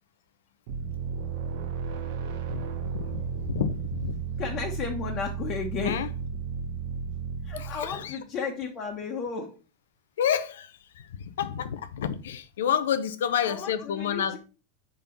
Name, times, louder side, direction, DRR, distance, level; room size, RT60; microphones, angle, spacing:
sound 1, 0.7-8.1, right 6 dB, 60° right, 0.8 m, -33 dB
voice 1, 2.5-4.2 5.8-6.1 7.6-8.2 10.2-14.4, left 9 dB, 75° left, 0.6 m, -30 dB
voice 2, 4.4-6.0 7.4-9.6 13.4-14.4, left 6 dB, 40° left, 1.2 m, -33 dB
5.5 x 3.8 x 5.2 m
hypercardioid pair, 95°, 0 cm